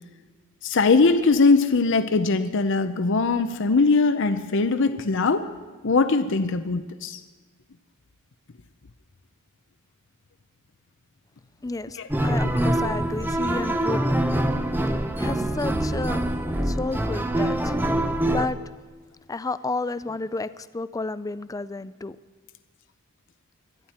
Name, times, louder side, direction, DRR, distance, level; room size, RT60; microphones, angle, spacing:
voice 1, 0.6-5.5 5.8-7.2 12.0-12.1 12.4-12.6, left 3 dB, 60° left, 9 dB, 0.7 m, -21 dB
voice 2, 11.6-14.1 15.2-16.2 16.6-17.7 18.3-18.6 19.3-22.2, left 3 dB, 15° left, 15 dB, 0.4 m, -31 dB
sound 1, 12.1-18.5, right 1 dB, 10° right, 0.7 m, -24 dB
22.0 x 13.0 x 4.4 m, 1.4 s
head